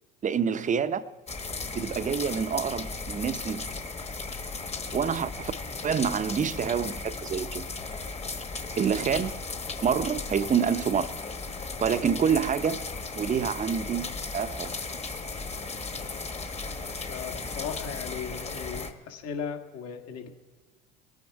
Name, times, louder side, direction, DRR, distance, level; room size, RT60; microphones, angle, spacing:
voice 1, 0.2-1.0 1.7-3.6 4.9-5.5 5.8-7.7 8.7-9.4 9.8-11.1 11.8-12.8 13.1-14.7, right 7 dB, 25° right, 0.7 m, -27 dB
sound 1, 1.3-18.9, left 3 dB, 20° left, 1.3 m, -36 dB
voice 2, 17.1-20.3, left 7 dB, 55° left, 1.9 m, -37 dB
22.0 x 9.4 x 4.7 m
hypercardioid pair, 85°, 29 cm